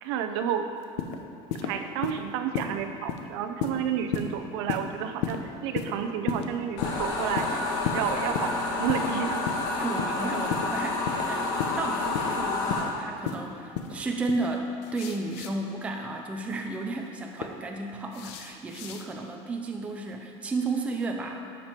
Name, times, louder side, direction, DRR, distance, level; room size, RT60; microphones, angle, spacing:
voice 1, 0.0-0.7 1.5-9.4, right 8 dB, 70° right, 7 dB, 0.7 m, -31 dB
sound 1, 0.8-1.2 1.5-1.7 2.0-2.2 2.5-2.7 3.1-3.2 3.6-3.8 4.1-4.3 4.7-4.9 5.2-5.4 5.7-5.9 6.3-6.5 6.8-7.0 7.4-7.5 7.8-8.0 8.3-8.5 8.9-9.1 9.5-9.6 10.0-10.1 10.5-10.7 11.1-11.2 11.6-11.7 12.1-12.3 12.7-12.9 13.3-13.4 13.7-13.9 14.3-14.5 14.8-15.5 16.9-17.5 18.1-19.0, left 8 dB, 85° left, 0.8 m, -32 dB
sound 2, 6.8-12.8, left 3 dB, 60° left, 1.5 m, -29 dB
voice 2, 9.7-21.4, right 3 dB, 10° right, 2 dB, 0.5 m, -33 dB
12.5 x 5.3 x 4.4 m, 2.6 s
cardioid pair, 180°, 14 cm